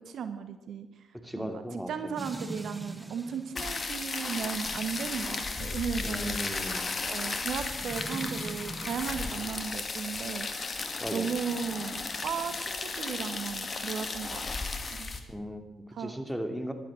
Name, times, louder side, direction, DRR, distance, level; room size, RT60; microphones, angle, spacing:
voice 1, 0.1-1.1 1.3-6.6 7.0-10.5 10.7-14.4 14.9-15.1 15.9-16.2, right 7 dB, 65° right, 9 dB, 1.1 m, -36 dB
voice 2, 1.2-1.9 6.0-6.8 11.0-11.3 15.3-16.7, equal, ahead, 6 dB, 2.9 m, -36 dB
sound 1, 2.2-9.4 11.3-12.7, right 1 dB, 15° right, 1.4 m, -45 dB
sound 2, 3.5-15.2, left 3 dB, 40° left, 2.1 m, -35 dB
15.0 x 12.0 x 7.6 m, 1.1 s
hypercardioid pair, 45°, 0 cm